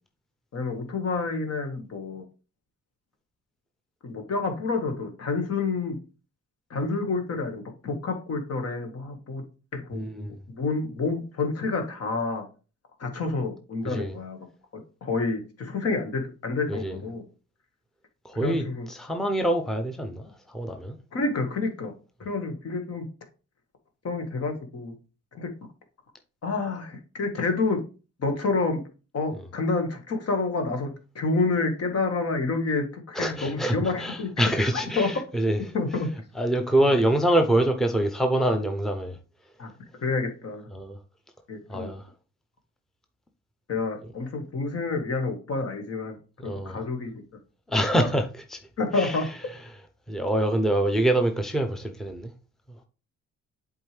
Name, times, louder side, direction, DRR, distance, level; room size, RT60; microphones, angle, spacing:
voice 1, 0.5-2.2 4.0-6.0 6.7-9.4 9.7-10.1 10.5-12.4 13.0-14.4 15.0-17.2 18.4-18.9 21.1-21.9 22.3-23.0 24.0-24.9 25.4-25.5 26.4-27.8 28.2-28.8 29.1-34.3 34.6-34.7 35.0-35.2 35.7-36.1 36.8-36.9 39.6-39.7 40.0-40.6 41.5-41.9 43.7-46.2 46.4-47.1 48.8-49.3, left 3 dB, 55° left, 1.8 m, -28 dB
voice 2, 9.9-10.3 13.8-14.1 16.7-17.0 18.2-21.0 33.1-35.7 36.3-39.2 40.7-41.0 41.7-42.0 46.4-46.8 47.7-48.6 48.9-49.2 50.1-52.3, right 1 dB, ahead, 0.8 m, -25 dB
7.7 x 4.6 x 3.4 m
cardioid pair, 90°, 30 cm